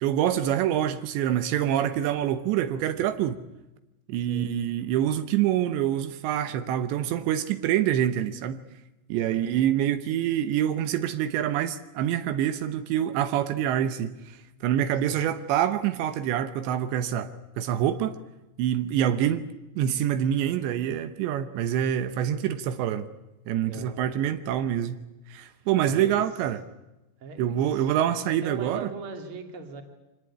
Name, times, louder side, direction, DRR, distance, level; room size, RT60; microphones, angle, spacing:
voice 1, 0.0-3.4 4.1-8.6 9.1-18.2 18.6-19.5 19.8-23.1 23.5-25.0 25.3-26.6 27.4-28.9, right 10 dB, 80° right, 10 dB, 3.2 m, -26 dB
voice 2, 9.2-9.6 15.1-15.3 23.7-24.1 25.8-26.2 27.2-29.8, right 5 dB, 35° right, 5 dB, 2.8 m, -41 dB
25.5 x 18.5 x 9.9 m, 1.0 s
omnidirectional pair, 5.1 m